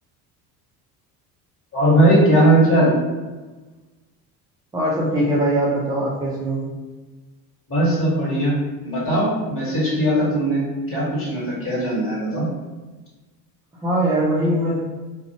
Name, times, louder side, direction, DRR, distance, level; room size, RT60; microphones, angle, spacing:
voice 1, 1.7-2.9 7.7-8.5 8.8-10.6 10.9-12.5, right 1 dB, 25° left, -6 dB, 1.4 m, -18 dB
voice 2, 4.7-6.6 13.8-14.8, right 1 dB, 10° right, -7 dB, 0.3 m, -21 dB
2.4 x 2.1 x 2.8 m, 1.2 s
hypercardioid pair, 75°, 49 cm